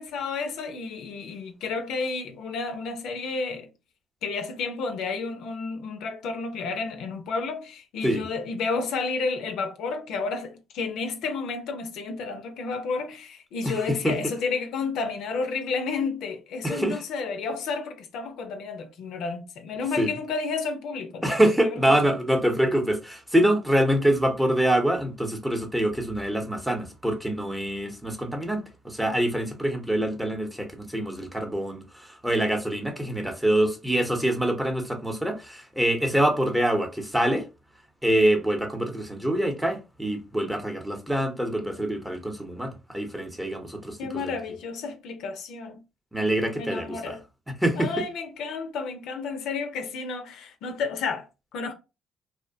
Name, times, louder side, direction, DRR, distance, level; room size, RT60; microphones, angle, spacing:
voice 1, 0.0-3.7 4.2-21.4 21.8-22.1 44.0-45.8 46.6-47.2 47.7-51.7, left 4 dB, 75° left, 0.5 m, -31 dB
voice 2, 13.6-14.1 16.6-17.0 20.0-20.1 21.2-37.5 38.0-44.3 46.1-47.2 47.6-47.9, right 1 dB, 5° right, 0.7 m, -25 dB
2.6 x 2.1 x 2.6 m
cardioid pair, 80°, 0 cm